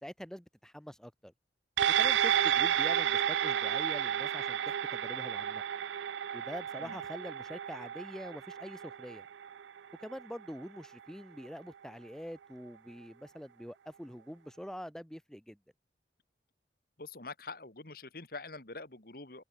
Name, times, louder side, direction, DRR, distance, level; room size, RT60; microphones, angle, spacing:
voice 1, 0.0-1.3 1.9-5.6 6.3-9.2 10.0-15.6, equal, 5° left, 0.9 m, -45 dB
sound 1, 1.8-10.5 10.8-10.9, right 9 dB, 90° right, 0.4 m, -31 dB
voice 2, 17.0-19.4, left 3 dB, 55° left, 2.2 m, -45 dB
head